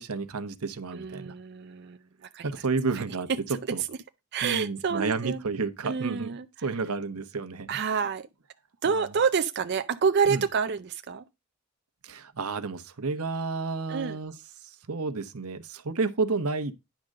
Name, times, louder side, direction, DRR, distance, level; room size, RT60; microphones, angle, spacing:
voice 1, 0.0-1.3 2.4-3.3 3.7-3.8 4.4-6.3 6.6-7.7 10.3-10.4 12.0-14.3 14.9-16.8, right 4 dB, 90° right, 1.0 m, -31 dB
voice 2, 0.9-2.0 2.3-2.6 2.9-3.0 3.3-4.0 4.3-5.4 5.8-6.8 7.7-8.3 8.8-11.2 13.9-14.2, right 6 dB, 50° right, 0.5 m, -28 dB
10.5 x 3.8 x 6.5 m
head